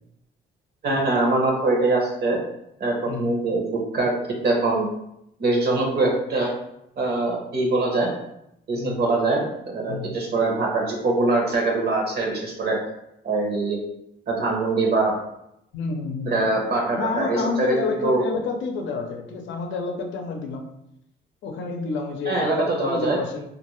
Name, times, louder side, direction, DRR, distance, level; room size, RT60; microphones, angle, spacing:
voice 1, 0.8-2.4 2.8-4.1 4.4-4.9 5.4-6.5 7.0-8.1 8.7-12.8 13.2-13.8 14.3-15.2 16.3-18.2 22.3-23.2, right 2 dB, 55° right, -1 dB, 0.8 m, -23 dB
voice 2, 8.7-9.0 9.9-10.1 15.7-16.4 16.9-20.7 21.4-23.4, left 4 dB, 70° left, 3 dB, 0.6 m, -29 dB
2.4 x 2.2 x 3.0 m, 0.80 s
cardioid pair, 90°, 20 cm